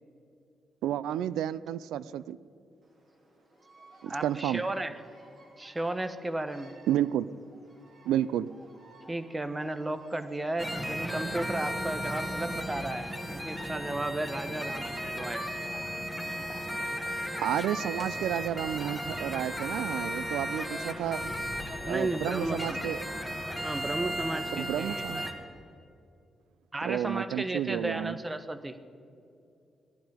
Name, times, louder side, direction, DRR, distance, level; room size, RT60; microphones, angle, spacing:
voice 1, 0.8-2.4 4.0-4.6 6.9-7.3 8.1-8.5 17.4-21.3 21.9-23.0 24.6-25.2 26.8-28.2, right 11 dB, 80° right, 18 dB, 0.4 m, -31 dB
Bird vocalization bird call bird song, 2.8-20.1, right 1 dB, 55° right, 4.1 m, -57 dB
voice 2, 4.1-4.9 5.6-6.7 9.1-15.4 21.8-22.9 23.6-25.3 26.7-28.8, right 2 dB, 20° right, 10 dB, 1.2 m, -34 dB
sound 1, 10.6-25.3, equal, 5° right, 2.1 m, -35 dB
18.0 x 11.5 x 5.1 m, 2.6 s
hypercardioid pair, 45°, 0 cm